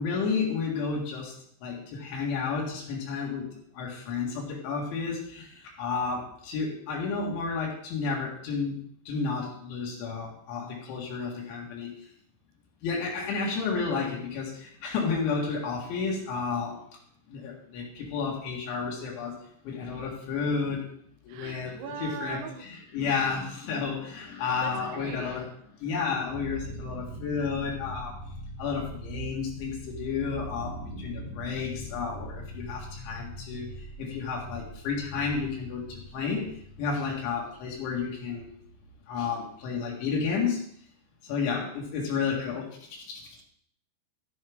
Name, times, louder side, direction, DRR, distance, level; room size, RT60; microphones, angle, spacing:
voice 1, 0.0-1.3 1.6-3.5 3.7-8.8 9.1-12.1 12.8-16.8 17.3-19.4 19.6-20.9 21.2-25.5 25.8-28.2 28.6-33.7 34.0-36.5 36.8-38.5 39.1-40.6 41.2-43.3, left 5 dB, 80° left, -2 dB, 4.3 m, -31 dB
voice 2, 21.3-22.7 24.6-25.4 41.5-41.7, right 7 dB, 75° right, 6 dB, 2.8 m, -41 dB
sound 1, 26.3-40.2, right 1 dB, 25° right, 2.3 m, -42 dB
12.5 x 10.5 x 3.6 m, 0.63 s
omnidirectional pair, 5.2 m